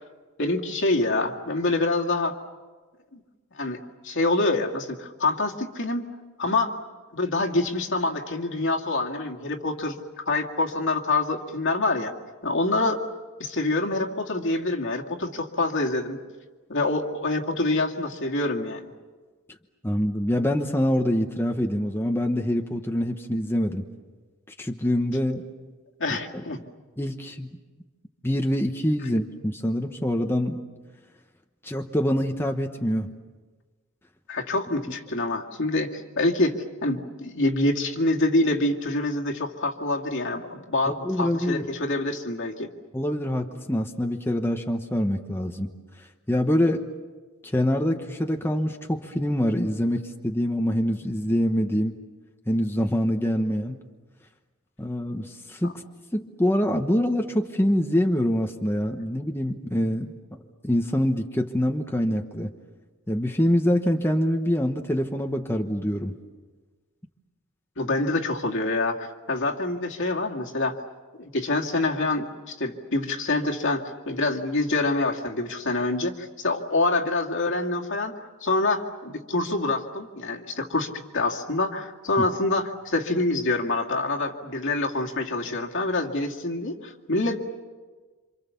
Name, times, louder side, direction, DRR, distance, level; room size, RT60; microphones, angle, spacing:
voice 1, 0.4-2.3 3.1-3.2 3.6-6.1 6.4-6.7 7.1-10.0 10.3-12.1 12.4-13.0 13.4-16.2 16.7-18.9 26.0-26.6 34.3-42.7 67.8-70.8 71.2-87.4, left 2 dB, 60° left, 2 dB, 2.2 m, -26 dB
voice 2, 19.8-23.8 24.6-25.4 26.1-26.2 27.0-27.5 28.2-30.6 31.6-33.1 40.9-41.7 42.9-45.7 46.3-46.9 47.5-52.0 52.5-53.8 54.8-55.8 56.1-60.4 60.6-62.5 63.1-66.1, equal, 10° left, 3 dB, 1.1 m, -25 dB
27.5 x 27.0 x 7.1 m, 1.3 s
head